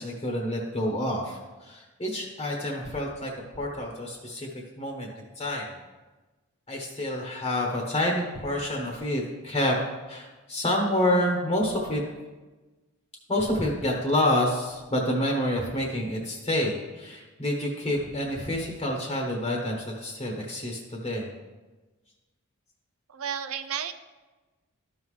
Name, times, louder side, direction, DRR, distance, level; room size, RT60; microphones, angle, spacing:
voice 1, 0.0-4.5 4.8-5.7 6.7-9.8 10.1-12.0 13.3-21.3, left 1 dB, 25° left, 0 dB, 1.1 m, -28 dB
voice 2, 23.1-23.9, right 8 dB, 65° right, 10 dB, 0.5 m, -32 dB
13.0 x 5.5 x 3.2 m, 1.2 s
head